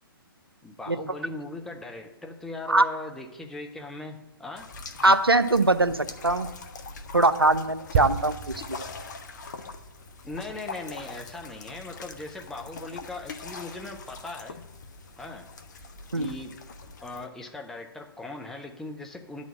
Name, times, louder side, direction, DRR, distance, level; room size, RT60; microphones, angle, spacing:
voice 1, 0.6-4.7 10.2-14.6 15.2-15.5 16.2-16.6 17.0-19.5, left 2 dB, 5° left, 2 dB, 0.7 m, -39 dB
sound 1, 4.6-17.3, left 4 dB, 50° left, 0.8 m, -43 dB
voice 2, 5.0-6.5 7.1-8.4 8.7-8.9 16.1-16.3, right 2 dB, 90° right, 12 dB, 0.6 m, -21 dB
sound 2, 7.9-11.6 11.9-12.1, right 8 dB, 40° right, 0.6 m, -33 dB
10.5 x 4.3 x 7.2 m, 0.91 s
figure-of-eight pair, 125°, 12 cm